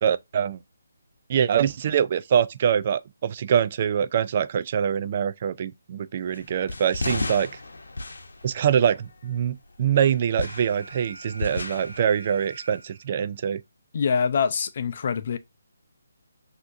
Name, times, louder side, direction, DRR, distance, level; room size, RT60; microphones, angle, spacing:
voice 1, 0.0-0.6 1.3-7.5 8.4-13.6, right 8 dB, 35° right, 0.3 m, -24 dB
sound 1, 6.3-9.4 9.9-12.0, left 2 dB, 85° left, 0.8 m, -33 dB
Alarm, 10.3-13.3, right 2 dB, 85° right, 1.2 m, -45 dB
voice 2, 13.9-15.4, left 6 dB, 45° left, 0.5 m, -24 dB
6.0 x 2.8 x 2.6 m
hypercardioid pair, 165°, 0 cm